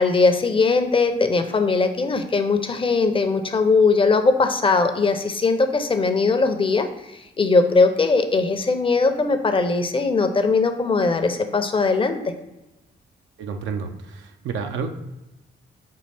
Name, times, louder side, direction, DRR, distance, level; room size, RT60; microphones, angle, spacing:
voice 1, 0.0-6.9 7.4-12.2, left 4 dB, 25° left, 7 dB, 0.6 m, -20 dB
voice 2, 13.4-14.9, right 5 dB, 75° right, 6 dB, 0.4 m, -30 dB
5.4 x 2.4 x 3.3 m, 0.95 s
supercardioid pair, 55°, 20 cm